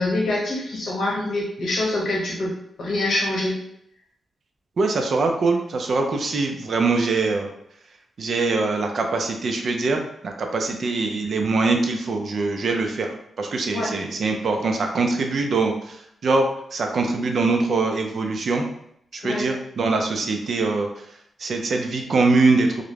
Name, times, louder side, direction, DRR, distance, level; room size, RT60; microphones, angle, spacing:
voice 1, 0.0-2.5 2.8-3.6 13.7-13.9 19.2-19.5, left 2 dB, 70° left, -4 dB, 1.0 m, -25 dB
voice 2, 4.8-7.5 8.2-13.1 13.4-16.0 16.2-18.6 19.1-20.9 21.4-22.8, right 3 dB, 50° right, 3 dB, 0.4 m, -23 dB
2.4 x 2.1 x 3.1 m, 0.72 s
wide cardioid pair, 170°, 0 cm